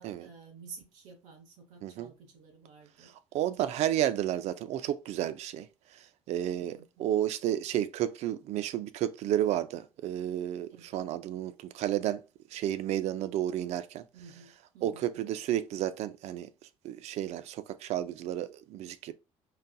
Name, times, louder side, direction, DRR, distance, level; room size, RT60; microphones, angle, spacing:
voice 1, 0.0-3.1 6.6-6.8 10.7-10.9 14.1-15.4, right 5 dB, 85° right, 0.9 m, -52 dB
voice 2, 3.0-5.7 6.3-12.2 12.5-14.0 14.8-16.5 16.8-19.1, right 12 dB, 70° right, 0.4 m, -32 dB
4.0 x 2.5 x 2.2 m
cardioid pair, 105°, 12 cm